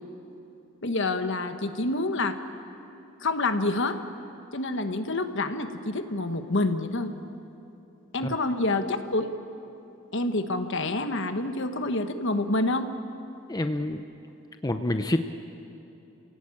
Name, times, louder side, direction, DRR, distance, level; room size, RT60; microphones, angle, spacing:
voice 1, 0.8-2.4 3.2-4.0 4.5-7.1 8.1-9.3 10.1-12.9, left 2 dB, 65° left, 8 dB, 1.3 m, -27 dB
voice 2, 13.5-14.0 14.6-15.3, left 1 dB, 20° left, 7 dB, 0.7 m, -27 dB
30.0 x 17.0 x 8.7 m, 2.9 s
head